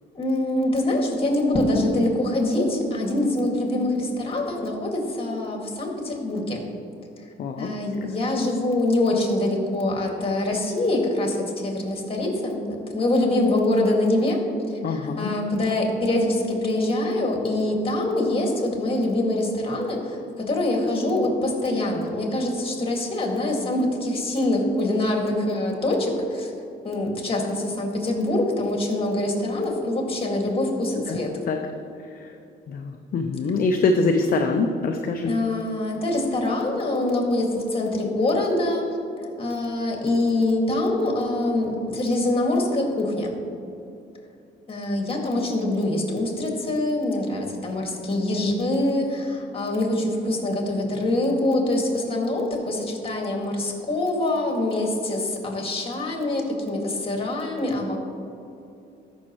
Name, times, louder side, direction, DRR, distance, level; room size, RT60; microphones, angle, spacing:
voice 1, 0.1-6.6 7.6-26.5 26.8-31.3 35.3-38.9 39.2-43.3 44.7-58.0, left 1 dB, 30° left, 1 dB, 2.0 m, -24 dB
voice 2, 7.4-7.7 14.8-15.3 31.1-31.2 31.5-31.6 32.0-32.3 32.7-35.3, left 3 dB, 50° left, 4 dB, 0.6 m, -24 dB
14.0 x 6.3 x 3.0 m, 2.7 s
cardioid pair, 90°, 20 cm